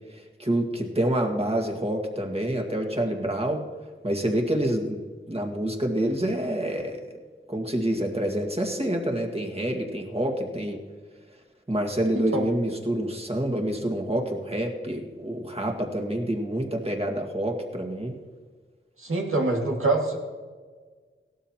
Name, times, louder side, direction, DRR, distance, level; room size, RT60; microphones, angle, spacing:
voice 1, 0.1-3.6 4.0-5.0 5.3-7.2 7.5-10.8 11.7-18.1, right 1 dB, 30° right, 2 dB, 1.8 m, -27 dB
voice 2, 19.0-20.2, right 2 dB, 80° right, 0 dB, 2.0 m, -24 dB
17.5 x 12.5 x 2.9 m, 1.5 s
wide cardioid pair, 60°, 21 cm